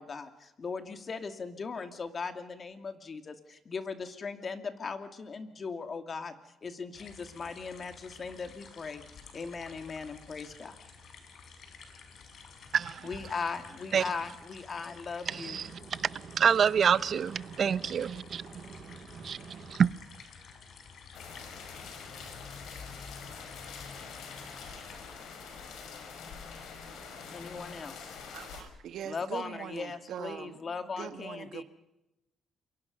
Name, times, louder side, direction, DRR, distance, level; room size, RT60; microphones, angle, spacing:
voice 1, 0.0-9.0 9.3-10.8 13.0-15.6 27.3-28.1 29.0-31.6, left 4 dB, 40° left, 2.5 m, -39 dB
sound 1, 6.9-25.1, left 5 dB, 65° left, 5.2 m, -51 dB
voice 2, 12.7-13.1 13.9-14.0 15.3-19.9, right 7 dB, 55° right, 0.8 m, -28 dB
sound 2, 21.1-28.6, left 5 dB, 80° left, 5.7 m, -45 dB
voice 3, 28.3-30.6 31.0-31.6, right 9 dB, 75° right, 1.6 m, -41 dB
28.0 x 23.5 x 5.4 m
cardioid pair, 90°, 0 cm